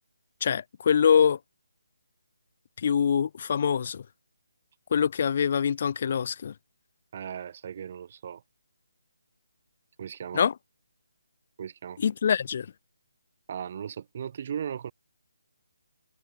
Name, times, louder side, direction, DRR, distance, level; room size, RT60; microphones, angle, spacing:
voice 1, 0.4-1.4 2.8-4.0 4.9-6.5 10.3-10.5 12.0-12.7, left 7 dB, 40° left, 0.9 m, -24 dB
voice 2, 7.1-8.4 10.0-10.4 11.6-12.0 13.5-14.9, right 8 dB, 40° right, 0.7 m, -37 dB
figure-of-eight pair, 160°, 0 cm